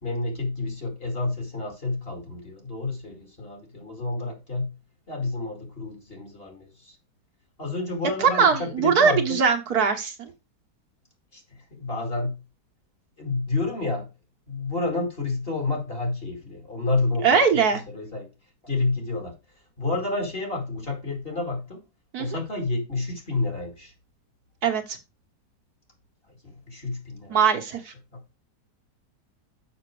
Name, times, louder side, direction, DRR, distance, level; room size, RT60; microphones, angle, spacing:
voice 1, 0.0-4.7 5.1-6.9 7.6-9.4 11.3-11.4 11.7-12.4 13.2-14.1 14.5-18.3 18.6-19.4 19.8-21.8 22.2-23.9 26.4-27.4, left 3 dB, 35° left, 2.5 m, -29 dB
voice 2, 8.2-10.3 17.2-17.8 22.1-22.3 24.6-25.0 27.3-27.9, right 6 dB, 65° right, 1.6 m, -21 dB
6.8 x 5.9 x 4.7 m
omnidirectional pair, 1.8 m